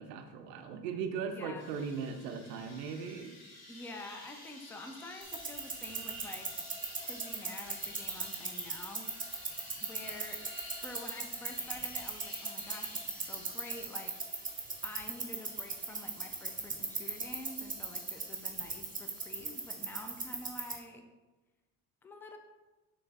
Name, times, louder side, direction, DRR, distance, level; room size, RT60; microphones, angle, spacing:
voice 1, 0.0-3.3, right 6 dB, 90° right, 6 dB, 0.6 m, -38 dB
voice 2, 1.3-1.7 3.7-6.6 7.0-9.1 9.8-10.4 10.8-14.5 14.8-21.0 22.0-22.4, left 2 dB, 5° left, 5 dB, 0.4 m, -48 dB
sound 1, 1.6-19.8, left 1 dB, 50° left, 1.1 m, -52 dB
sound 2, 5.2-20.8, right 4 dB, 15° right, 0.8 m, -40 dB
6.6 x 3.1 x 2.4 m, 1.2 s
hypercardioid pair, 60°, 48 cm